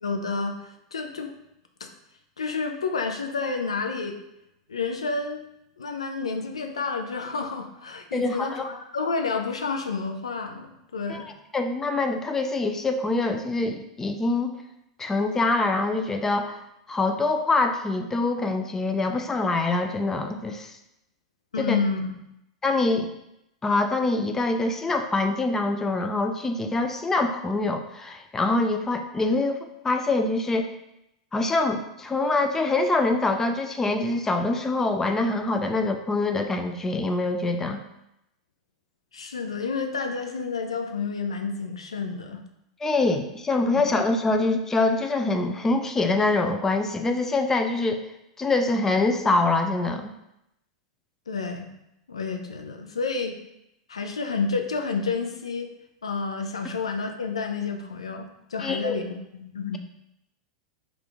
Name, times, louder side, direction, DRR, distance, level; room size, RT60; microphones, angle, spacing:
voice 1, 0.0-1.3 2.4-4.2 4.7-5.4 5.8-11.3 21.5-22.1 39.1-42.4 43.8-43.9 51.3-51.7 52.1-53.4 53.9-55.7 56.0-59.8, left 4 dB, 85° left, 5 dB, 0.4 m, -30 dB
voice 2, 8.1-8.7 11.1-11.2 11.5-14.6 15.0-16.6 16.9-20.8 21.6-21.8 22.6-23.1 23.6-29.6 29.8-30.7 31.3-37.8 42.8-48.0 48.4-50.1 58.6-59.0, left 2 dB, 15° left, 6 dB, 0.3 m, -24 dB
3.5 x 2.4 x 3.4 m, 0.84 s
hypercardioid pair, 95°, 3 cm